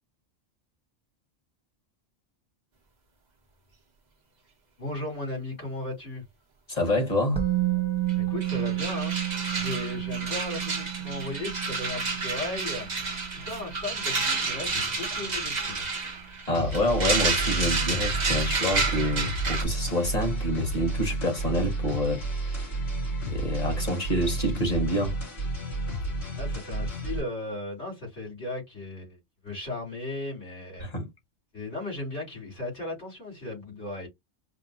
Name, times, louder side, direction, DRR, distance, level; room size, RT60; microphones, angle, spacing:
voice 1, 4.8-6.2 8.1-12.9 13.3-15.9 26.4-30.9 31.5-34.1, left 2 dB, 80° left, 3.5 m, -36 dB
voice 2, 6.7-7.4 16.5-22.6 23.3-25.1 30.8-31.1, left 1 dB, 35° left, 1.4 m, -27 dB
Musical instrument, 7.4-15.3 15.5-15.7, right 15 dB, 5° left, 0.8 m, -32 dB
sound 1, 8.1-8.2 8.4-19.6, right 3 dB, 40° right, 0.9 m, -30 dB
sound 2, 16.5-27.2, right 2 dB, 65° left, 3.3 m, -31 dB
5.1 x 2.0 x 2.7 m
omnidirectional pair, 1.2 m